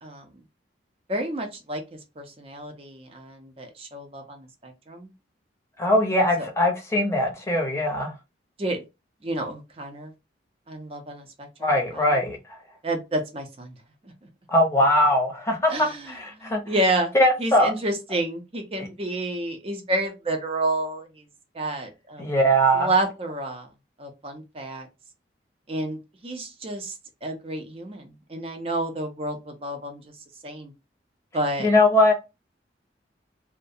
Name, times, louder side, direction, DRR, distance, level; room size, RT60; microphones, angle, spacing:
voice 1, 1.1-1.8 2.2-5.1 8.6-8.8 9.2-10.1 10.7-12.2 12.8-13.7 14.0-14.1 15.7-21.2 21.5-22.3 22.7-23.7 24.0-24.9 25.7-26.9 27.2-30.1 30.4-30.7 31.3-31.7, right 1 dB, 30° right, 0.5 m, -30 dB
voice 2, 5.8-8.1 11.6-12.4 14.5-16.6 17.1-17.7 18.8-18.9 22.2-22.9 31.6-32.1, left 1 dB, 15° left, 0.7 m, -21 dB
2.3 x 2.1 x 2.6 m
head